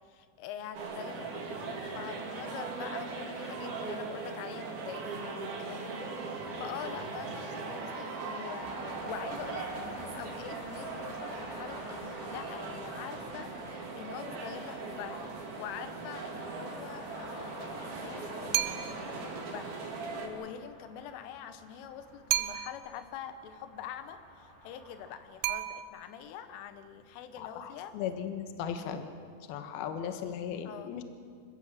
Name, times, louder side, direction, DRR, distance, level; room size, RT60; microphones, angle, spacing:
voice 1, 0.1-27.9 30.7-30.9, left 9 dB, 90° left, 10 dB, 3.6 m, -45 dB
sound 1, 0.7-20.3, right 3 dB, 55° right, 4.4 m, -39 dB
sound 2, 8.6-25.2, equal, 15° left, 3.0 m, -50 dB
sound 3, 18.5-19.2 22.3-23.0 25.4-26.2, right 13 dB, 85° right, 3.2 m, -32 dB
voice 2, 27.4-29.1 29.4-31.0, left 8 dB, 65° left, 7 dB, 2.8 m, -37 dB
25.5 x 18.0 x 7.5 m, 2.1 s
omnidirectional pair, 5.5 m